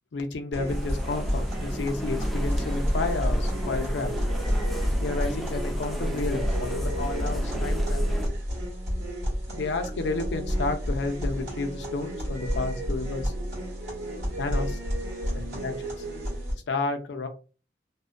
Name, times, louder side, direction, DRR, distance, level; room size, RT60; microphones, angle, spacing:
voice 1, 0.1-4.1 5.0-8.1 9.5-13.3 14.4-14.8 15.3-15.7 16.7-17.3, left 3 dB, 85° left, 5 dB, 0.5 m, -31 dB
sound 1, 0.5-16.5, equal, 90° right, 1.4 m, -31 dB
sound 2, 0.7-8.3, equal, ahead, 0.3 m, -30 dB
2.6 x 2.1 x 2.4 m, 0.35 s
head